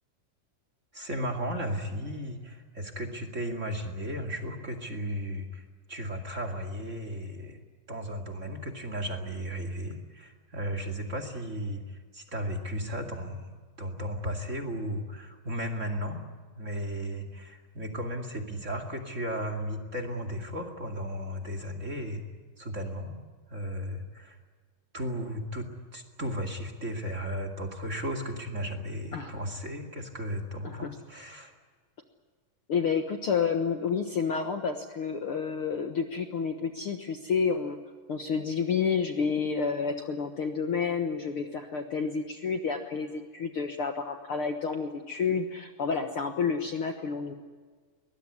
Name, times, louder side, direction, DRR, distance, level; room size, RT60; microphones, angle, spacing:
voice 1, 0.9-5.6 5.9-7.6 7.9-16.2 16.6-22.2 22.6-23.2 23.5-24.4 24.9-31.5, equal, 25° right, 7 dB, 2.1 m, -35 dB
voice 2, 30.6-31.0 32.7-37.8 38.1-47.3, left 5 dB, 55° left, 6 dB, 1.6 m, -30 dB
22.5 x 20.5 x 9.7 m, 1.5 s
omnidirectional pair, 3.9 m